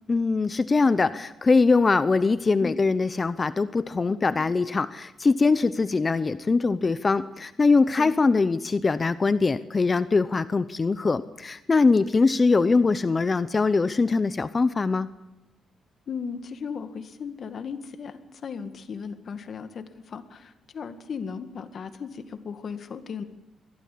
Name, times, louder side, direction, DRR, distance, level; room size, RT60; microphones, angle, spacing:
voice 1, 0.1-15.1, left 4 dB, 30° left, 13 dB, 0.7 m, -22 dB
voice 2, 16.1-23.2, left 6 dB, 50° left, 9 dB, 1.9 m, -36 dB
22.5 x 16.5 x 8.5 m, 0.96 s
cardioid pair, 115°, 0 cm